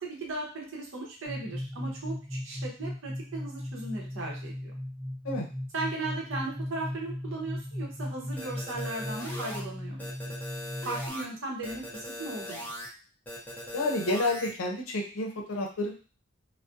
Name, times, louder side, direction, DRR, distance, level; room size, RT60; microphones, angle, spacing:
voice 1, 0.0-4.7 5.7-10.3 10.8-12.7, right 2 dB, 65° right, -2 dB, 0.8 m, -37 dB
sound 1, 1.3-11.1, left 1 dB, 35° right, 0.9 m, -37 dB
sound 2, 8.4-9.6 10.0-11.2 11.6-12.9 13.3-14.5, equal, 10° left, 0.6 m, -39 dB
voice 2, 13.7-15.9, left 2 dB, 85° left, 1 dB, 0.6 m, -30 dB
2.4 x 2.1 x 2.5 m, 0.37 s
head